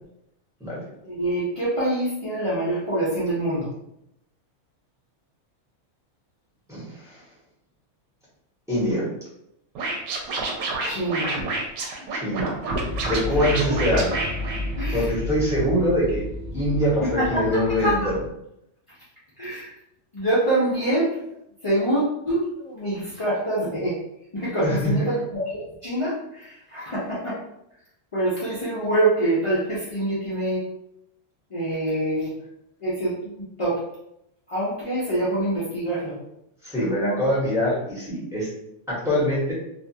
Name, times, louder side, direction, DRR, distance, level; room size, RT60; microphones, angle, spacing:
voice 1, 1.0-3.7 10.9-11.3 13.3-13.8 14.8-15.1 17.0-18.1 19.4-19.7 20.1-21.1 21.6-24.0 24.3-25.4 25.8-27.4 28.1-30.6 31.5-32.3 32.8-33.8 34.5-36.2 37.0-37.2, right 1 dB, 50° left, -9 dB, 0.4 m, -25 dB
voice 2, 6.7-7.2 8.7-9.1 12.2-12.5 13.0-14.0 14.9-16.2 16.5-18.2 24.6-24.9 36.6-38.5 38.9-39.5, equal, ahead, -9 dB, 0.9 m, -23 dB
Scratching (performance technique), 9.8-15.2, right 3 dB, 80° right, 1.1 m, -29 dB
sound 1, 12.7-18.3, left 1 dB, 55° right, 0.8 m, -31 dB
2.6 x 2.3 x 2.6 m, 0.80 s
omnidirectional pair, 1.5 m